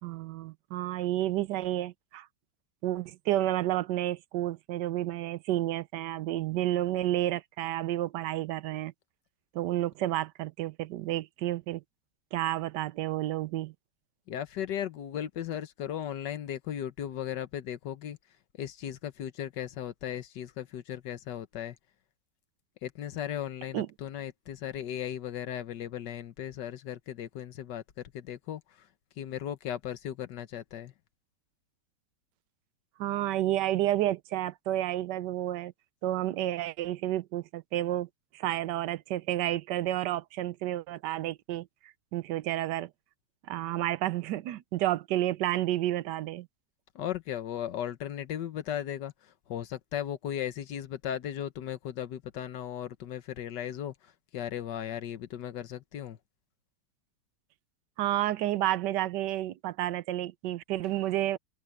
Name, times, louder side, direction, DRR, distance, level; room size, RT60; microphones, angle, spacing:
voice 1, 0.0-2.3 2.8-8.9 9.5-11.8 12.3-13.7 23.7-23.9 33.0-35.7 36.0-42.9 43.4-46.5 58.0-61.4, right 14 dB, 85° right, 1.3 m, -30 dB
voice 2, 14.3-18.2 18.6-21.7 22.8-27.8 28.1-28.6 29.2-30.9 46.9-49.1 49.5-53.9 54.3-56.2, left 10 dB, 85° left, 1.6 m, -36 dB
omnidirectional pair, 1.8 m